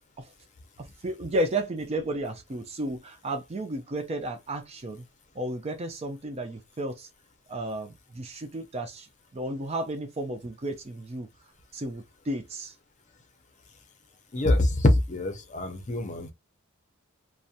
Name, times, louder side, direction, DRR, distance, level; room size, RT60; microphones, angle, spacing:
voice 1, 0.8-5.0 5.3-7.1 7.5-9.1 9.3-11.3 11.7-12.7, right 1 dB, 30° right, 0.4 m, -33 dB
voice 2, 14.3-16.3, left 1 dB, 35° left, 0.6 m, -24 dB
2.4 x 2.1 x 2.7 m
head